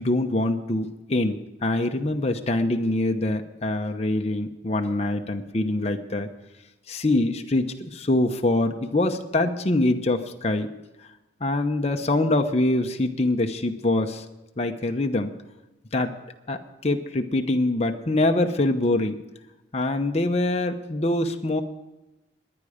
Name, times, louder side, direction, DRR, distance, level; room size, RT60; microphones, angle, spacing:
voice 1, 0.0-6.3 6.9-10.7 11.4-14.2 14.6-15.3 15.9-16.1 16.5-19.2 19.7-21.6, left 2 dB, 35° left, 4 dB, 0.9 m, -24 dB
21.0 x 9.7 x 5.1 m, 1.0 s
head